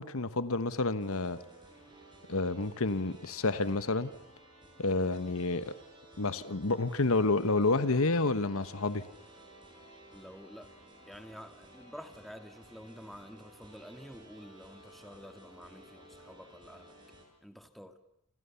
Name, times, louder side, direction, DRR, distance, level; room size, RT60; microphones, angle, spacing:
voice 1, 0.0-1.4 2.3-4.1 4.8-5.7 6.2-9.0, left 3 dB, 70° left, 1.2 m, -29 dB
sound 1, 1.0-17.3, right 1 dB, 20° right, 7.5 m, -55 dB
voice 2, 10.1-10.7 11.1-16.9 17.4-18.0, equal, ahead, 1.8 m, -49 dB
28.5 x 27.0 x 7.1 m
head